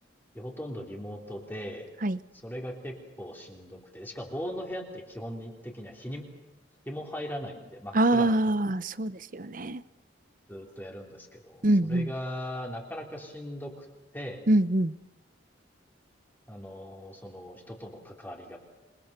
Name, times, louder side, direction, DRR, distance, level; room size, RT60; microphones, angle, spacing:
voice 1, 0.3-1.9 2.4-6.2 6.9-8.4 10.5-13.9 14.1-14.4 16.5-18.6, equal, 10° left, 0 dB, 3.8 m, -39 dB
voice 2, 7.9-9.8 11.6-12.1 14.5-14.9, right 1 dB, 45° right, 15 dB, 0.9 m, -24 dB
27.5 x 22.0 x 6.8 m, 1.1 s
head